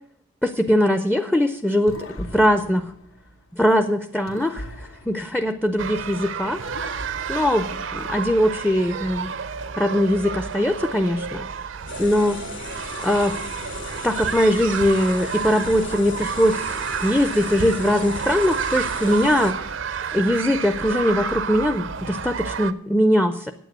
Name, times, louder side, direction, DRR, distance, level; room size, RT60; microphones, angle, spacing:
voice 1, 0.4-2.8 3.6-4.5 5.1-6.6 7.3-7.7 7.9-9.3 9.8-11.5 12.0-12.4 13.0-13.3 14.0-16.6 17.0-19.5 20.1-23.5, left 1 dB, 5° left, 8 dB, 0.4 m, -21 dB
sound 1, 1.9-3.8 4.3-6.2 6.7-8.4, left 1 dB, 80° left, 1.3 m, -40 dB
sound 2, 5.8-22.7, right 6 dB, 70° right, 0.6 m, -30 dB
sound 3, 11.9-19.5, left 3 dB, 60° left, 2.1 m, -37 dB
9.1 x 8.7 x 8.0 m, 0.71 s
head